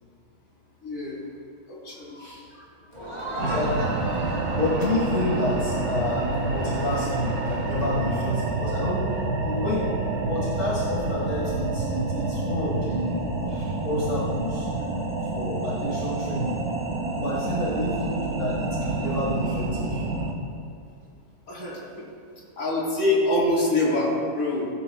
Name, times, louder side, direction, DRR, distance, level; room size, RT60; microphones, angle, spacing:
voice 1, 0.8-1.2 1.7-2.3 2.5-2.7 21.5-22.1 22.6-24.7, left 2 dB, 70° left, -5 dB, 3.8 m, -25 dB
Crowd, 2.9-8.2, right 1 dB, 25° right, 3.3 m, -35 dB
voice 2, 3.4-9.1 9.4-14.7 15.3-16.6 17.2-20.0, left 1 dB, 50° left, -5 dB, 2.0 m, -29 dB
sound 1, 3.4-20.3, right 2 dB, 75° right, 1.7 m, -28 dB
21.0 x 11.5 x 2.3 m, 2.4 s
omnidirectional pair, 1.6 m